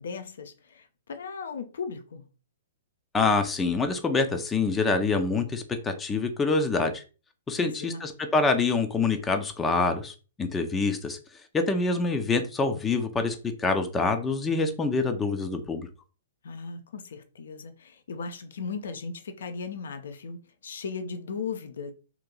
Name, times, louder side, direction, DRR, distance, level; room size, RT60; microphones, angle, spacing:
voice 1, 0.0-2.2 7.6-8.0 16.4-21.9, left 5 dB, 65° left, 0.6 m, -37 dB
voice 2, 3.1-7.0 7.5-11.2 11.5-15.9, left 3 dB, 15° left, 0.5 m, -26 dB
3.0 x 2.5 x 3.7 m
figure-of-eight pair, 115°, 0 cm